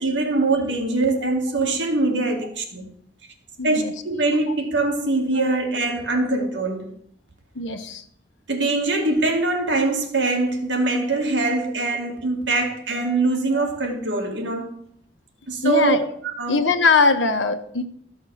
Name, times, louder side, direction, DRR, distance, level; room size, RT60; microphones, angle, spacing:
voice 1, 0.0-2.8 3.6-6.9 8.5-14.7 15.5-16.0 16.2-16.6, right 2 dB, 80° right, 2.1 m, -23 dB
voice 2, 3.6-3.9 7.5-8.0 12.6-12.7 13.6-13.7 15.6-16.0 16.5-17.8, left 4 dB, 85° left, 1.2 m, -21 dB
13.5 x 6.3 x 6.4 m
head